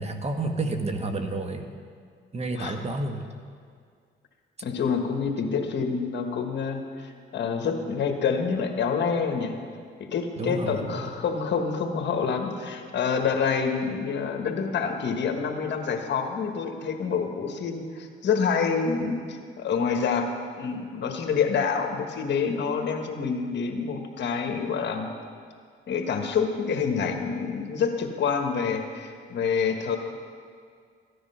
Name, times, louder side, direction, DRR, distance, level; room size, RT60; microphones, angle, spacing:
voice 1, 0.0-1.7 2.3-3.3 10.4-11.2, right 2 dB, 30° right, 5 dB, 1.3 m, -30 dB
voice 2, 4.6-9.5 10.1-25.1 25.9-30.0, left 6 dB, 60° left, 4 dB, 1.5 m, -27 dB
15.0 x 10.0 x 5.7 m, 2.1 s
cardioid pair, 90°, 20 cm